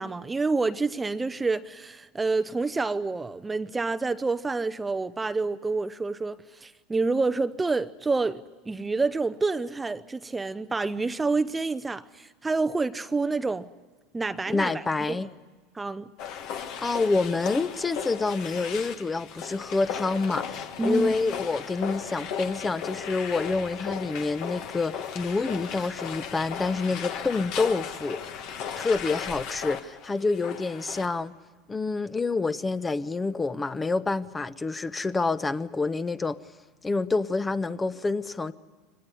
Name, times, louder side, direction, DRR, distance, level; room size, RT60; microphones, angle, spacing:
voice 1, 0.0-13.7 14.1-15.3 15.7-16.1 20.8-21.1, right 3 dB, 15° right, 0.7 m, -28 dB
voice 2, 14.5-15.3 16.8-28.2 28.8-31.3 31.7-36.4 36.8-38.5, left 3 dB, 20° left, 0.8 m, -27 dB
sound 1, 16.2-31.1, left 8 dB, 60° left, 1.7 m, -36 dB
23.5 x 19.0 x 9.9 m
hypercardioid pair, 90°, 0 cm